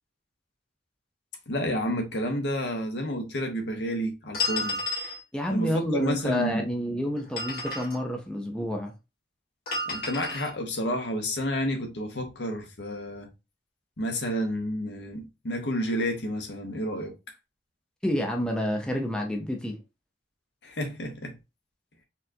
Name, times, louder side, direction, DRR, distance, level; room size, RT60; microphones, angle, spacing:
voice 1, 1.5-4.8 5.5-6.7 9.9-13.3 14.0-17.2 20.6-21.4, equal, 70° left, 1.0 m, -30 dB
sound 1, 4.3-5.2 7.2-8.0 9.7-10.5, left 2 dB, 55° left, 1.7 m, -31 dB
voice 2, 5.3-8.9 18.0-19.8, left 1 dB, 5° left, 0.6 m, -29 dB
4.2 x 2.4 x 2.6 m
head